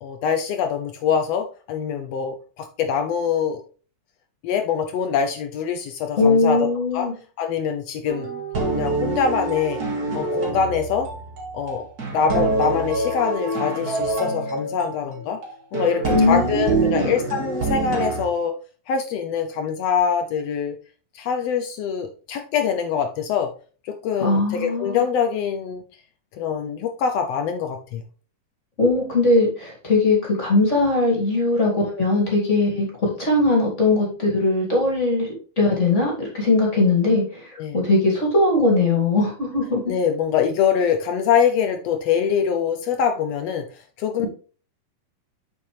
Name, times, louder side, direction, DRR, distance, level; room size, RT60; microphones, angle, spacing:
voice 1, 0.0-3.6 4.4-7.1 7.4-8.3 8.7-9.8 10.1-11.1 11.5-11.9 12.1-15.4 15.7-18.5 18.9-20.8 21.1-23.5 23.8-25.8 26.4-28.0 37.6-37.8 39.9-43.7 44.0-44.3, left 7 dB, 80° left, 6 dB, 1.4 m, -24 dB
voice 2, 6.2-7.1 16.1-17.1 24.2-25.0 28.8-39.8, left 2 dB, 25° left, -2 dB, 2.2 m, -20 dB
sound 1, 8.1-18.2, right 2 dB, 40° right, 1.6 m, -26 dB
7.1 x 5.5 x 3.3 m, 0.38 s
omnidirectional pair, 3.5 m